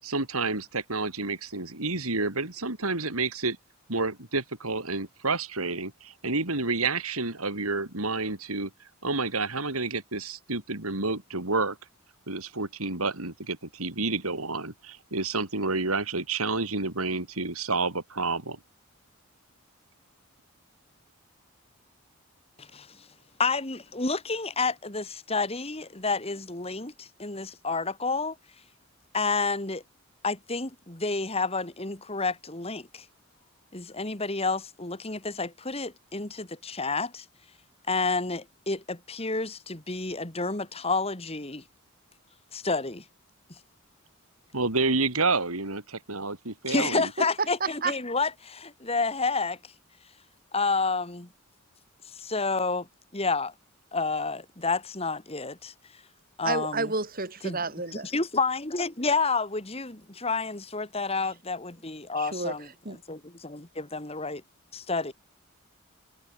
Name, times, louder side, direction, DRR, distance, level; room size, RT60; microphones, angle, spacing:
voice 1, 0.0-3.6 3.9-8.7 9.0-11.8 12.3-18.6 44.5-47.1, right 3 dB, 85° right, 4.4 m, -29 dB
voice 2, 22.6-23.1 23.4-28.4 29.1-29.8 30.2-33.1 33.7-37.3 37.9-41.6 42.5-43.0 46.7-49.6 50.5-51.3 52.1-52.9 53.1-53.5 53.9-55.7 56.4-56.9 57.4-57.6 57.9-62.7 63.1-64.4 64.7-65.1, left 3 dB, 25° left, 2.3 m, -30 dB
voice 3, 46.9-47.3 47.6-47.9 56.4-58.1 62.2-62.5 62.8-63.0, right 3 dB, 40° right, 4.0 m, -31 dB
head